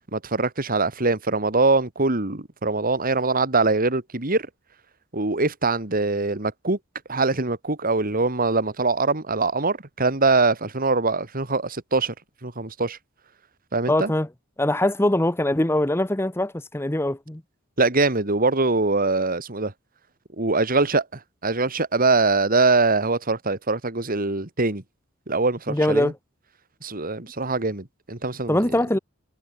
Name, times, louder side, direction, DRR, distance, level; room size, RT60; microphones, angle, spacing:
voice 1, 0.1-4.5 5.1-6.8 7.1-12.1 12.4-13.0 13.7-14.1 17.8-19.7 20.4-24.8 25.3-26.1 26.8-28.6, right 3 dB, 45° right, 2.5 m, -23 dB
voice 2, 13.9-14.3 14.6-17.4 25.7-26.1 28.5-29.0, left 1 dB, 10° left, 0.9 m, -22 dB
head